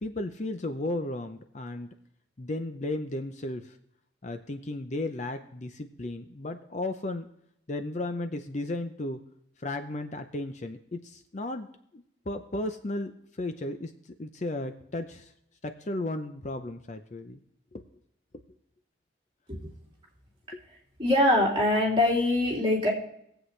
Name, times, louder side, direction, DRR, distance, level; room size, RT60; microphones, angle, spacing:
voice 1, 0.0-1.9 2.4-3.8 4.2-7.3 7.7-9.2 9.6-11.7 11.9-13.9 14.2-15.3 15.6-17.4 17.7-17.8 20.5-20.6, left 2 dB, 40° left, 8 dB, 0.6 m, -34 dB
voice 2, 21.0-22.9, left 1 dB, 25° right, -4 dB, 2.9 m, -23 dB
20.5 x 7.9 x 3.3 m, 0.73 s
head